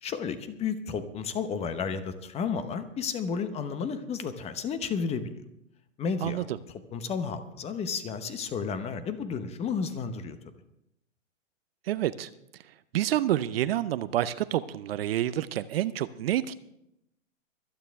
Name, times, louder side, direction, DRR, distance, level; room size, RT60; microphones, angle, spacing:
voice 1, 0.0-5.3 6.0-6.5 6.9-10.4, left 6 dB, 15° left, 11 dB, 0.9 m, -32 dB
voice 2, 6.2-6.6 11.9-12.3 12.9-16.5, right 12 dB, 50° right, 15 dB, 0.6 m, -28 dB
25.0 x 9.1 x 3.5 m, 0.81 s
hypercardioid pair, 130°, 39 cm